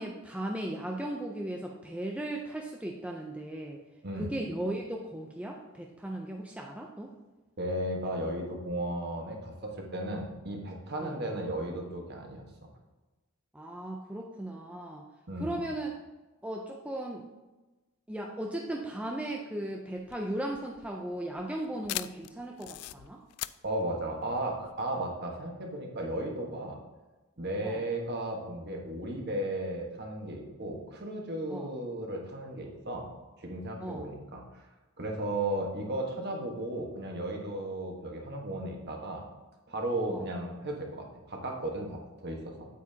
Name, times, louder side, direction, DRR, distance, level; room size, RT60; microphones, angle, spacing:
voice 1, 0.0-3.8 4.2-7.1 11.0-11.2 13.5-15.0 15.4-16.0 16.4-17.2 18.1-23.2 27.6-27.8 31.5-31.7 33.8-34.1 40.1-40.3, right 1 dB, 5° right, 0 dB, 0.5 m, -37 dB
voice 2, 4.0-4.3 7.6-12.4 15.3-15.6 23.6-26.8 27.4-33.1 33.4-34.6 35.0-39.2 39.7-42.7, right 1 dB, 50° right, 1 dB, 1.4 m, -35 dB
sound 1, 20.0-25.1, left 16 dB, 90° left, 0.3 m, -41 dB
8.7 x 8.3 x 2.8 m, 1.1 s
head